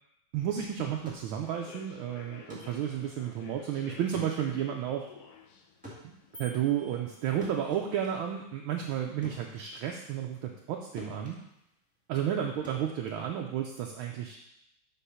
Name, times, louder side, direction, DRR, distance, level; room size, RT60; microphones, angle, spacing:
voice 1, 0.3-5.0 6.0-11.4 12.1-14.4, right 9 dB, 75° right, 1 dB, 1.4 m, -32 dB
sound 1, 1.0-10.7 11.0-13.9, left 1 dB, 5° right, 1.5 m, -51 dB
Human voice / Subway metro underground, 1.4-7.0, left 7 dB, 85° left, 1.7 m, -52 dB
sound 2, 6.3-7.9, equal, 20° left, 0.8 m, -52 dB
7.3 x 3.9 x 5.6 m, 0.81 s
omnidirectional pair, 2.4 m